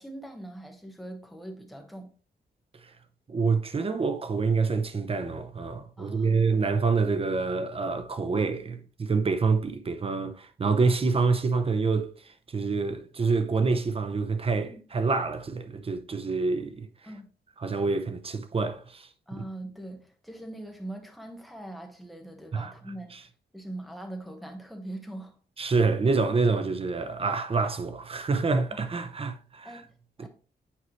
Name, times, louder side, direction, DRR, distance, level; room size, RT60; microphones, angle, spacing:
voice 1, 0.0-2.1 6.0-6.4 14.6-14.8 17.0-17.3 19.3-23.3 23.5-25.4 29.6-30.3, right 1 dB, ahead, 1.2 m, -42 dB
voice 2, 3.3-16.9 17.6-19.4 22.5-22.7 25.6-29.7 30.2-30.3, right 4 dB, 30° right, 0.7 m, -27 dB
8.6 x 4.6 x 3.1 m
wide cardioid pair, 145°, 18 cm